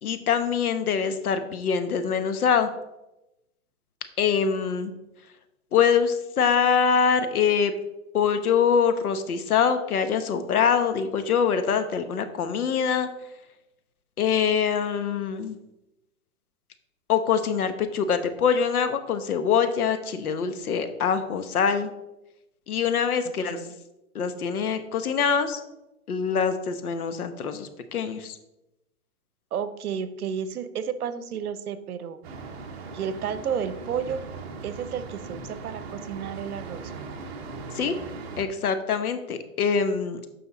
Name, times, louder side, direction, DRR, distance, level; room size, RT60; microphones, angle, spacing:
voice 1, 0.0-2.7 4.2-4.9 5.7-7.7 8.1-13.1 14.2-15.6 17.1-21.9 22.7-23.6 24.1-25.6 26.1-28.4 37.7-38.0 38.4-40.3, left 6 dB, 85° left, 9 dB, 1.2 m, -24 dB
voice 2, 29.5-32.2 32.9-34.2 34.6-37.2, right 7 dB, 85° right, 13 dB, 0.9 m, -32 dB
sound 1, 32.2-38.5, right 4 dB, 45° right, 1.1 m, -39 dB
7.8 x 5.6 x 4.1 m, 0.92 s
hypercardioid pair, 165°, 43 cm